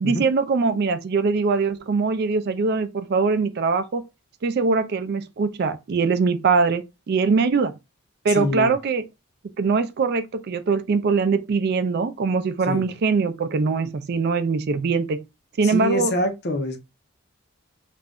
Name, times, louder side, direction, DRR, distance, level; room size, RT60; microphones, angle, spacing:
voice 1, 0.0-4.0 4.4-6.8 7.1-7.7 8.2-9.0 9.6-15.2 15.6-16.1, right 4 dB, 50° right, 0.4 m, -22 dB
voice 2, 8.3-8.7 12.7-12.9 15.6-16.8, left 1 dB, 50° left, 0.6 m, -25 dB
2.5 x 2.1 x 3.5 m
head